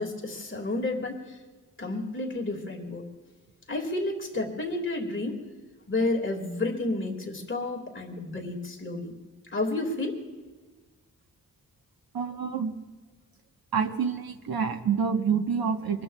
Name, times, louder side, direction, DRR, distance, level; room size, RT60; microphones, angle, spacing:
voice 1, 0.0-1.4 1.8-3.1 3.7-5.4 5.9-9.2 9.5-10.2, left 2 dB, 35° left, 1 dB, 2.0 m, -31 dB
voice 2, 12.1-12.7 13.7-16.0, right 6 dB, 80° right, 5 dB, 1.1 m, -27 dB
24.5 x 20.5 x 2.3 m, 1.3 s
wide cardioid pair, 160°, 35 cm